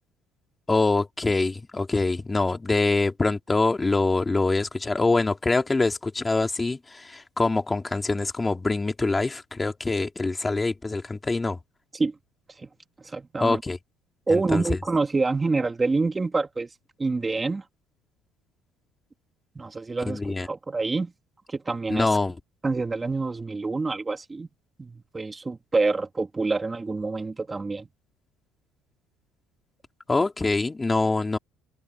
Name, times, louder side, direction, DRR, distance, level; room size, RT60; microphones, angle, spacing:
voice 1, 0.7-11.6 13.4-13.8 14.3-14.8 20.0-20.5 21.9-22.4 30.1-31.4, left 3 dB, 15° left, 2.9 m, -24 dB
voice 2, 13.0-13.6 14.3-16.7 17.0-17.6 19.6-21.1 21.5-22.1 22.6-24.5 24.8-27.9, right 3 dB, 20° right, 2.5 m, -27 dB
open air
cardioid pair, 105°, 0 cm